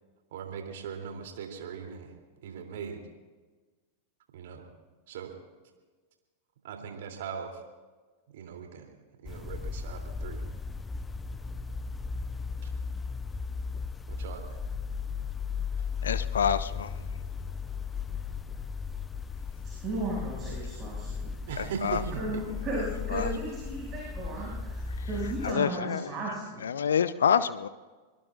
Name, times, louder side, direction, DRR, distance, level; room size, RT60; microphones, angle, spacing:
voice 1, 0.3-2.1 2.4-3.0 4.3-4.6 5.1-5.3 6.6-7.5 8.3-8.9 9.2-10.4 14.1-14.6 21.5-22.4, right 7 dB, 55° right, 2.9 m, -39 dB
sound 1, 9.3-25.5, left 5 dB, 15° left, 0.6 m, -36 dB
voice 2, 16.0-16.9 21.6-22.0 23.1-23.3 25.4-26.1 26.6-27.7, left 7 dB, 65° left, 0.6 m, -27 dB
voice 3, 19.8-21.3 22.2-24.8 25.1-26.6, right 2 dB, 30° right, 6.1 m, -35 dB
24.5 x 21.5 x 2.5 m
figure-of-eight pair, 90°, 0 cm